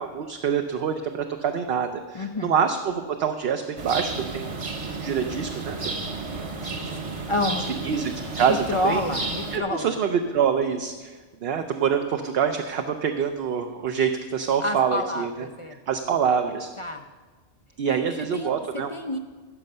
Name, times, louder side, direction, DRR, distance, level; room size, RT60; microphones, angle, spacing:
voice 1, 0.0-4.5 5.0-5.9 7.8-9.0 9.5-16.7 17.8-18.9, right 7 dB, 60° right, 5 dB, 0.8 m, -26 dB
voice 2, 2.1-2.5 6.8-7.0 7.3-7.7 8.7-9.9 14.6-15.8 16.8-17.0 18.3-19.2, left 1 dB, 50° left, 6 dB, 0.3 m, -29 dB
sound 1, 3.8-9.6, right 3 dB, 30° right, 0.8 m, -32 dB
15.5 x 5.3 x 6.7 m, 1.4 s
omnidirectional pair, 1.3 m